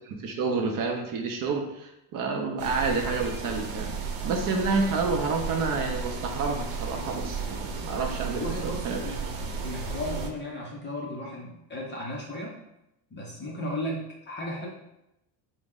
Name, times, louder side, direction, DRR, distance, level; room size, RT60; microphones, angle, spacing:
voice 1, 0.0-3.9 4.2-9.1, right 4 dB, 45° right, 3 dB, 0.5 m, -29 dB
sound 1, 2.6-10.3, right 4 dB, 85° right, 0.8 m, -34 dB
voice 2, 8.4-9.3 9.6-12.5 13.1-14.7, left 1 dB, 25° left, -2 dB, 0.4 m, -35 dB
4.2 x 2.0 x 3.6 m, 0.85 s
cardioid pair, 155°, 50 cm